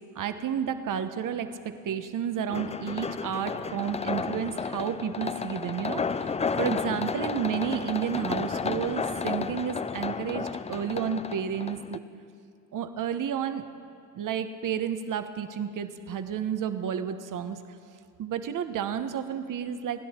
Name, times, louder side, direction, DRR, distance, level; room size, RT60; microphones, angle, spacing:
voice 1, 0.1-12.0 12.7-13.6 14.1-17.6 18.2-20.0, right 8 dB, 60° right, 9 dB, 1.1 m, -31 dB
sound 1, 2.5-12.0, left 5 dB, 20° left, 0.4 m, -32 dB
29.5 x 10.5 x 4.4 m, 2.5 s
cardioid pair, 90°, 36 cm